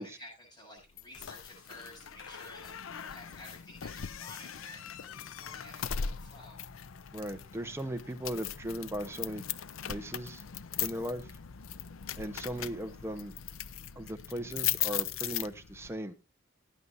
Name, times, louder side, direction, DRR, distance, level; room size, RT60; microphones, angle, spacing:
voice 1, 0.0-6.6, left 1 dB, 20° left, -3 dB, 8.0 m, -52 dB
sound 1, 1.0-15.9, left 9 dB, 85° left, 0.6 m, -39 dB
voice 2, 7.1-9.4 9.8-10.4 10.8-11.4 12.2-13.3 14.0-16.1, right 1 dB, 15° right, 6 dB, 1.0 m, -38 dB
18.0 x 9.6 x 2.7 m, 0.27 s
head